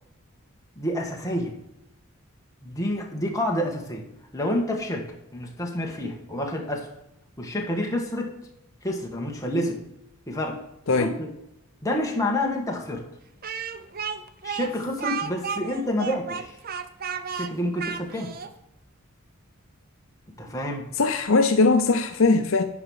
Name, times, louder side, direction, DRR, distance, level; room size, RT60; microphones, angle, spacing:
voice 1, 0.8-1.6 2.6-4.0 4.3-5.1 5.3-6.9 7.4-8.3 8.8-9.8 10.3-10.6 11.0-11.3 11.8-13.0 14.4-16.5 17.3-18.4 20.4-20.8, left 1 dB, 15° left, 0 dB, 1.6 m, -28 dB
Speech, 13.4-18.5, right 6 dB, 40° right, 0.6 m, -33 dB
voice 2, 20.9-22.6, left 3 dB, 65° left, 7 dB, 0.7 m, -20 dB
11.0 x 5.0 x 6.4 m, 0.83 s
head